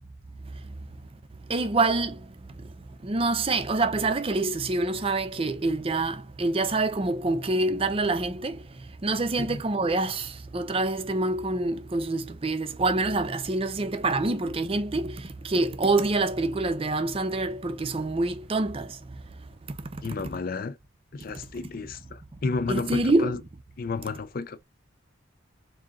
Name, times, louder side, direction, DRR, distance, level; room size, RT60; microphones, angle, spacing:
voice 1, 1.5-2.2 3.0-8.6 9.0-19.0 22.7-23.4, right 2 dB, 25° right, 0.5 m, -26 dB
voice 2, 20.0-20.8 21.1-23.4 23.8-24.6, left 4 dB, 45° left, 0.4 m, -32 dB
3.8 x 2.8 x 3.6 m
head